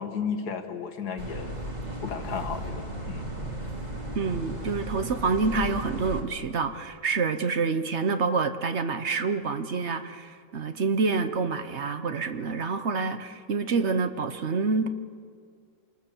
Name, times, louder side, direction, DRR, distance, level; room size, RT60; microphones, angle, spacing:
voice 1, 0.0-1.5 2.0-3.3, left 6 dB, 75° left, 6 dB, 2.1 m, -34 dB
sound 1, 1.2-6.2, right 1 dB, 25° right, 3.0 m, -35 dB
voice 2, 4.1-14.9, right 4 dB, 50° right, 9 dB, 1.1 m, -27 dB
27.5 x 19.5 x 7.2 m, 2.1 s
omnidirectional pair, 1.7 m